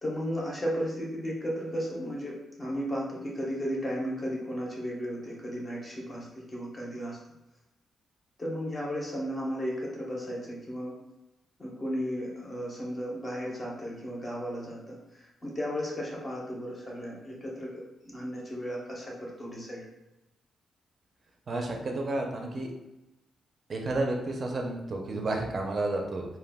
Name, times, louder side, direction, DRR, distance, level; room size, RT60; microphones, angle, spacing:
voice 1, 0.0-7.2 8.4-10.9 11.6-19.9, equal, 25° left, -3 dB, 0.6 m, -34 dB
voice 2, 21.5-22.7 23.7-26.3, right 2 dB, 40° right, 2 dB, 0.5 m, -31 dB
2.2 x 2.2 x 3.4 m, 0.98 s
wide cardioid pair, 135°, 0 cm